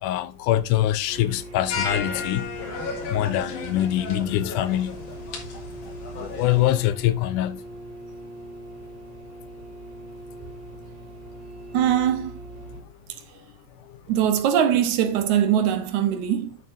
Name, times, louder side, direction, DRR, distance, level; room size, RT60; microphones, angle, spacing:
voice 1, 0.0-2.5 3.1-5.0 6.1-7.6, left 13 dB, 80° left, 1.9 m, -24 dB
sound 1, 1.1-12.8, right 2 dB, 55° right, 4.2 m, -40 dB
sound 2, 1.7-6.8, left 4 dB, 65° left, 3.5 m, -34 dB
voice 2, 11.7-12.4 14.1-16.6, right 10 dB, 70° right, 1.9 m, -22 dB
11.0 x 6.9 x 2.5 m
omnidirectional pair, 4.0 m